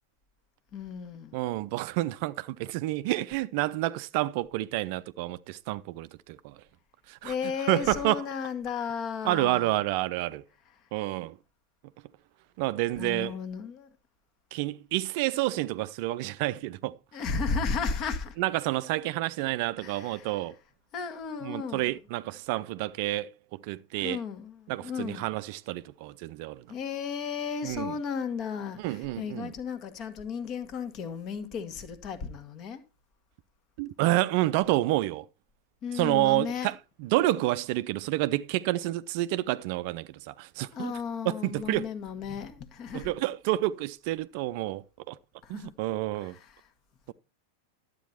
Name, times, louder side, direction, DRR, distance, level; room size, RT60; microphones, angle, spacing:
voice 1, 0.7-1.4 7.2-9.7 12.9-13.9 17.1-18.4 19.8-20.4 20.9-22.0 23.9-25.3 26.7-32.8 35.8-36.7 40.7-43.1 45.4-45.7 46.2-46.7, left 6 dB, 35° left, 1.6 m, -34 dB
voice 2, 1.3-6.6 7.1-7.3 7.7-8.2 9.2-10.4 10.9-11.4 12.6-13.3 14.5-17.0 18.4-20.6 21.4-24.2 24.7-26.6 27.6-27.9 28.8-29.5 33.8-35.3 35.9-40.9 41.3-41.9 42.9-45.2 45.5-46.4, right 17 dB, 45° right, 0.5 m, -29 dB
12.0 x 8.2 x 4.3 m
figure-of-eight pair, 90°, 0 cm